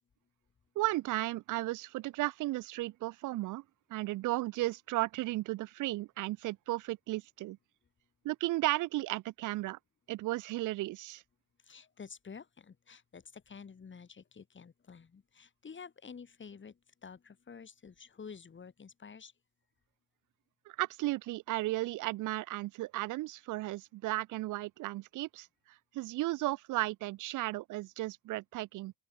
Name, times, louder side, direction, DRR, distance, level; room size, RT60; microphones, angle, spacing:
voice 1, 0.8-3.6 3.9-7.6 8.2-9.8 10.1-11.2 20.7-25.5 25.9-28.9, right 18 dB, 85° right, 0.8 m, -34 dB
voice 2, 11.6-19.3, left 6 dB, 40° left, 5.2 m, -50 dB
open air
cardioid pair, 90°, 30 cm